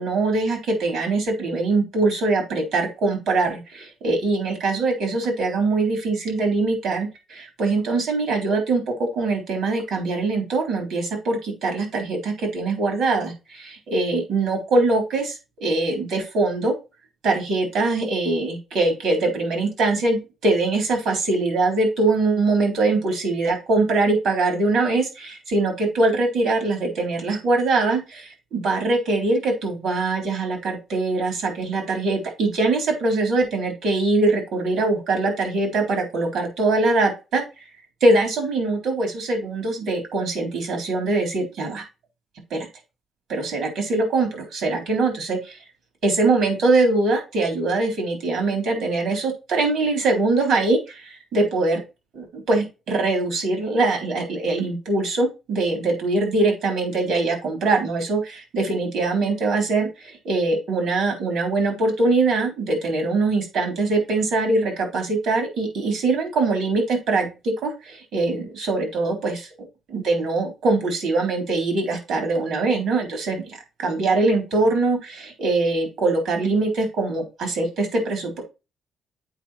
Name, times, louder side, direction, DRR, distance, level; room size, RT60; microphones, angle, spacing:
voice 1, 0.0-16.7 17.2-37.6 38.0-41.8 42.5-42.7 43.3-45.5 46.0-51.8 52.1-69.5 69.9-78.4, right 3 dB, 80° right, 4 dB, 3.9 m, -22 dB
8.1 x 5.0 x 4.4 m, 0.28 s
cardioid pair, 135°, 0 cm